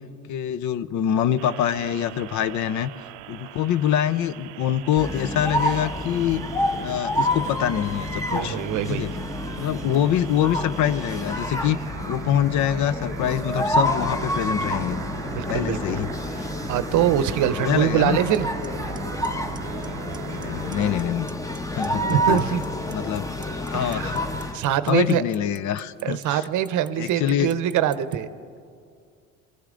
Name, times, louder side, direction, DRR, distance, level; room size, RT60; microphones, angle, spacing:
voice 1, 0.3-2.9 3.3-6.4 6.8-8.6 8.9-9.1 9.6-11.8 12.1-15.0 15.5-16.1 16.4-16.5 17.6-18.2 20.3-21.3 21.7-22.4 22.9-23.4 23.6-24.5 24.9-26.4 27.0-27.5, left 10 dB, 55° left, 16 dB, 0.6 m, -25 dB
sound 1, 1.4-21.0, right 14 dB, 85° right, 0.5 m, -40 dB
sound 2, 5.0-24.6, left 1 dB, 10° left, 0.9 m, -29 dB
voice 2, 8.3-9.0 15.3-16.0 16.7-18.5 22.1-22.6 23.7-24.1 24.5-25.2 26.0-28.3, right 10 dB, 55° right, 14 dB, 0.8 m, -23 dB
Clock, 18.3-18.4 18.6-19.0 19.2-19.9 20.1-20.4 20.7-21.6 21.8-28.1, right 5 dB, 15° right, 0.5 m, -45 dB
22.5 x 15.0 x 3.8 m, 2.3 s
supercardioid pair, 80°, 36 cm